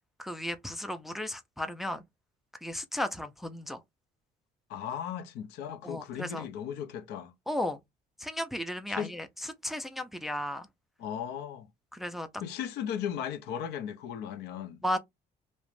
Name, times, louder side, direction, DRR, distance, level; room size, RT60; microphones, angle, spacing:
voice 1, 0.2-2.0 2.6-3.8 5.8-6.5 7.5-7.8 8.2-9.3 9.6-10.7 11.9-12.3 14.8-15.0, left 1 dB, ahead, 0.3 m, -34 dB
voice 2, 4.7-7.3 8.9-9.1 11.0-11.7 12.4-14.8, left 9 dB, 80° left, 0.4 m, -36 dB
2.4 x 2.0 x 3.0 m
cardioid pair, 110°, 17 cm